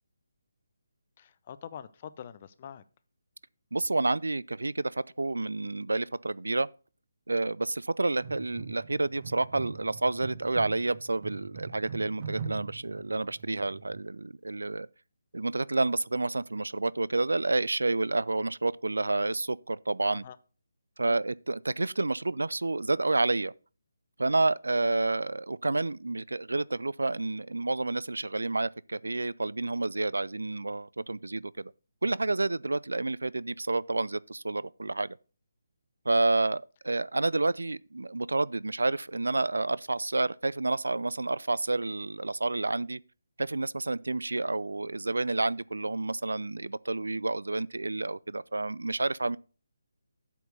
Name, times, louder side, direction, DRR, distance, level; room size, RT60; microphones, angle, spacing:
voice 1, 1.2-2.8 20.2-20.4, left 9 dB, 35° left, 0.6 m, -45 dB
voice 2, 3.7-6.7 7.3-14.9 15.3-20.2 21.0-23.5 24.2-31.7 32.0-35.2 36.1-43.0 43.4-49.4, right 2 dB, 70° right, 0.3 m, -29 dB
sound 1, 8.2-14.0, right 5 dB, 35° right, 0.9 m, -42 dB
8.2 x 4.5 x 6.7 m
figure-of-eight pair, 145°, 0 cm